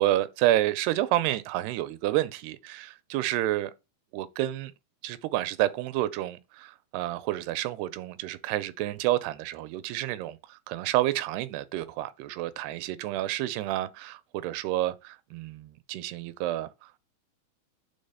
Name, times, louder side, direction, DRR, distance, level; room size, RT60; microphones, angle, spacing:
voice 1, 0.0-3.7 4.1-4.7 5.0-17.0, right 15 dB, 90° right, 2.6 m, -29 dB
6.4 x 3.5 x 5.4 m
omnidirectional pair, 4.5 m